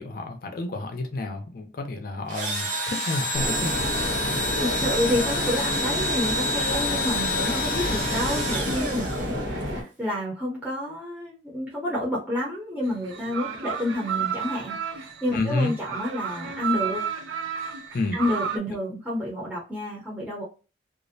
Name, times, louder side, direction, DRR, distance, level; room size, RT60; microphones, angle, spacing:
voice 1, 0.0-3.8 15.3-15.7 17.9-18.2, left 2 dB, 50° left, 0.5 m, -30 dB
Engine / Drill, 2.3-9.6, left 1 dB, 45° right, 0.7 m, -28 dB
sound 1, 3.3-9.8, equal, 75° right, 1.0 m, -30 dB
voice 2, 4.6-17.0 18.1-20.4, left 1 dB, 5° right, 0.6 m, -29 dB
sound 2, 12.9-18.6, right 7 dB, 90° right, 0.4 m, -32 dB
2.5 x 2.0 x 2.6 m
head